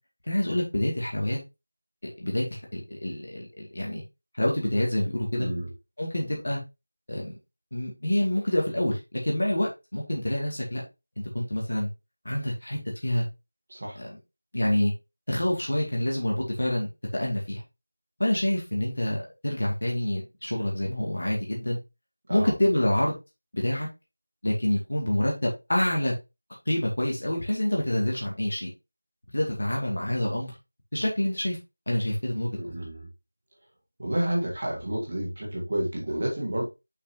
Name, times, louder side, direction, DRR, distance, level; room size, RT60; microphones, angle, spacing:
voice 1, 0.2-1.4 2.2-4.0 4.3-5.5 6.0-6.6 7.1-7.3 7.7-10.8 11.3-11.9 12.2-13.3 14.0-14.1 14.5-14.9 15.3-17.6 18.2-21.8 22.3-23.2 23.5-23.9 24.4-26.1 26.7-28.7 29.3-30.5 30.9-31.6 31.9-32.6, left 1 dB, 45° left, -1 dB, 2.3 m, -27 dB
voice 2, 5.3-5.7 13.7-14.0 22.3-22.5 32.6-33.1 34.0-36.6, right 1 dB, 25° right, -3 dB, 2.0 m, -30 dB
6.5 x 6.1 x 2.8 m, 0.25 s
figure-of-eight pair, 180°, 0 cm